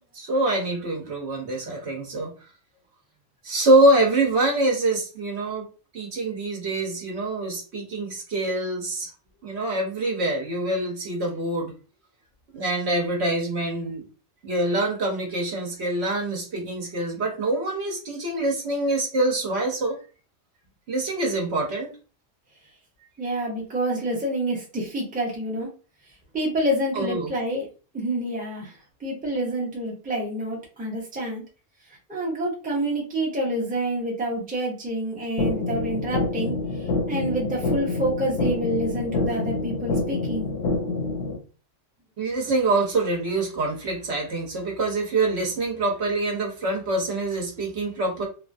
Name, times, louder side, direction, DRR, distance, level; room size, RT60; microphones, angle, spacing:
voice 1, 0.1-2.3 3.4-5.7 5.9-9.1 9.4-11.7 12.5-14.0 14.4-20.0 20.9-21.9 26.9-27.3 42.2-48.2, right 2 dB, 60° right, 0 dB, 1.0 m, -25 dB
voice 2, 23.2-25.7 26.3-27.7 27.9-31.4 32.1-40.5, right 1 dB, 10° right, -2 dB, 0.7 m, -28 dB
sound 1, 35.4-41.4, left 3 dB, 80° left, 1.0 m, -27 dB
2.9 x 2.3 x 2.5 m, 0.35 s
omnidirectional pair, 1.3 m